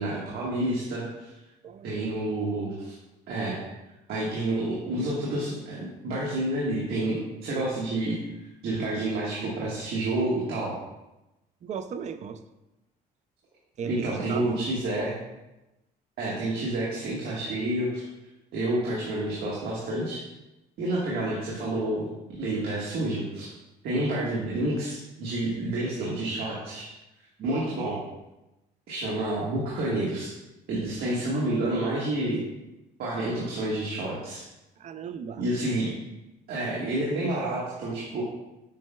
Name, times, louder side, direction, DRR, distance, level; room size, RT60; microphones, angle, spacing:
voice 1, 0.0-1.3 1.8-2.9 3.3-3.6 4.1-8.2 8.6-10.7 13.8-15.2 16.2-18.0 18.5-20.2 20.8-22.1 22.4-23.5 23.8-26.9 27.4-28.0 28.9-30.3 30.7-32.4 33.0-34.4 35.4-35.9 36.5-38.2, right 1 dB, 70° right, -5 dB, 1.5 m, -29 dB
voice 2, 1.6-2.0 11.6-12.4 13.8-14.8 23.9-24.0 27.4-27.6 34.8-35.4, right 6 dB, 45° right, 11 dB, 0.5 m, -36 dB
7.5 x 5.6 x 2.3 m, 0.99 s
cardioid pair, 110°, 17 cm